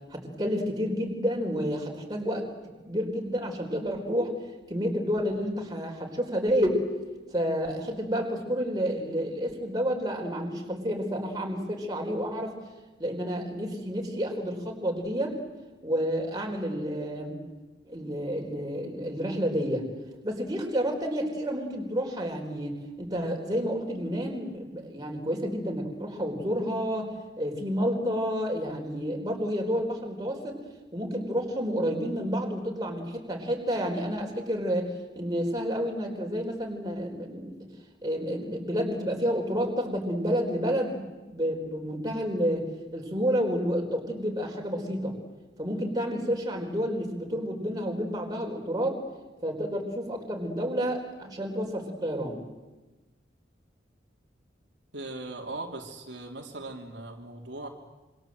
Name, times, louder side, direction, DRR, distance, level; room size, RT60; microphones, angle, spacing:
voice 1, 0.1-2.5 2.8-4.4 4.7-6.8 7.3-12.5 13.0-15.4 15.8-17.4 17.8-19.9 20.2-27.1 27.4-30.6 30.9-37.7 38.0-45.2 45.6-49.0 49.4-52.4, equal, 20° right, 0 dB, 4.2 m, -30 dB
voice 2, 54.9-57.7, right 2 dB, 80° right, 1 dB, 3.2 m, -39 dB
26.5 x 25.0 x 7.8 m, 1.2 s
head